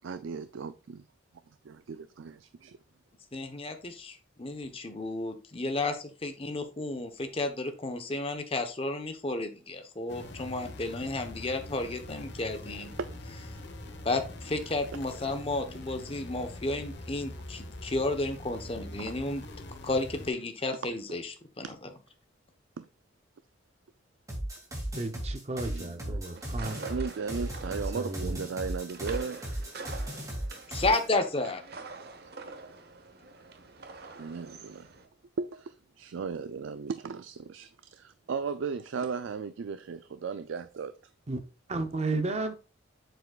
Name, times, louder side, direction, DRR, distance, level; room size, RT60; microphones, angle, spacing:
voice 1, 0.0-1.0 1.6-2.8 13.0-13.2 19.0-19.1 21.6-21.7 22.8-22.9 25.6-29.5 32.2-32.3 34.1-34.9 35.4-40.9, right 5 dB, 70° right, 0.4 m, -36 dB
voice 2, 3.3-12.9 14.0-19.4 19.8-21.7 30.7-31.6, left 2 dB, 30° left, 1.0 m, -32 dB
sound 1, 10.1-20.3, left 1 dB, 60° left, 1.2 m, -43 dB
sound 2, 24.3-31.1, right 1 dB, 15° right, 2.3 m, -36 dB
voice 3, 25.0-26.8 27.9-28.4 41.3-41.4 41.7-42.5, right 2 dB, 35° right, 0.7 m, -33 dB
sound 3, 26.2-35.1, right 4 dB, 55° right, 1.0 m, -46 dB
7.8 x 7.1 x 2.4 m
head